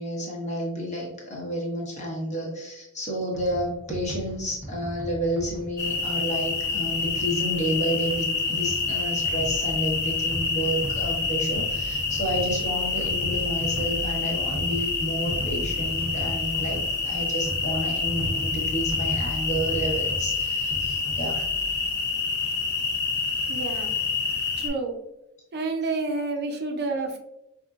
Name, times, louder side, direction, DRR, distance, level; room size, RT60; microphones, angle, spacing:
voice 1, 0.0-21.4, right 1 dB, 35° left, -2 dB, 1.2 m, -30 dB
sound 1, 3.3-21.7, equal, 5° right, 0.8 m, -37 dB
sound 2, 5.8-24.7, left 4 dB, 50° left, 0.8 m, -27 dB
voice 2, 23.5-23.9 24.6-25.0 25.5-27.2, right 3 dB, 50° right, 3 dB, 0.5 m, -29 dB
5.3 x 2.7 x 2.4 m, 0.87 s
head